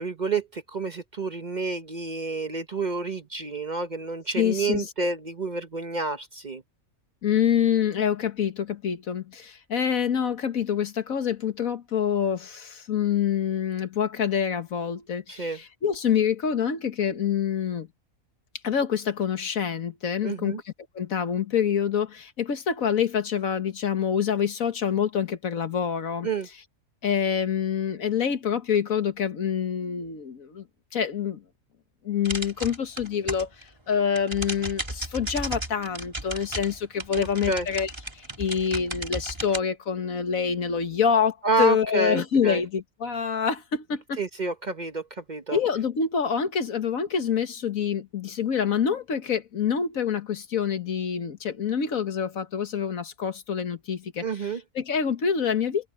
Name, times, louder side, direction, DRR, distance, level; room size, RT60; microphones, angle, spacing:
voice 1, 0.0-6.6 15.3-15.6 20.2-20.6 26.2-26.5 37.2-37.7 41.4-42.6 44.2-45.6 54.2-54.6, right 3 dB, 35° right, 0.9 m, -29 dB
voice 2, 4.3-4.9 7.2-17.9 18.6-26.3 27.0-30.6 30.9-31.4 32.0-44.2 45.5-54.5 54.7-55.9, left 7 dB, 75° left, 1.8 m, -26 dB
sound 1, 32.2-33.6 33.9-39.6, right 1 dB, 20° right, 2.7 m, -34 dB
omnidirectional pair, 1.5 m